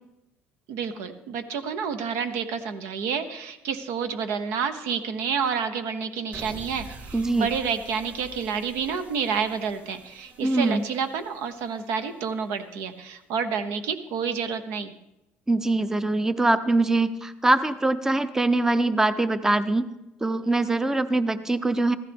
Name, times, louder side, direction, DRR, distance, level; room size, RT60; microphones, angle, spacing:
voice 1, 0.7-14.9, right 6 dB, 80° right, 9 dB, 1.0 m, -29 dB
sound 1, 6.3-12.7, right 3 dB, 40° right, 4.6 m, -46 dB
voice 2, 7.1-7.5 10.4-10.8 15.5-19.9 20.2-22.0, right 2 dB, 10° right, 12 dB, 0.6 m, -23 dB
15.0 x 14.0 x 3.5 m, 0.93 s
supercardioid pair, 95°, 5 cm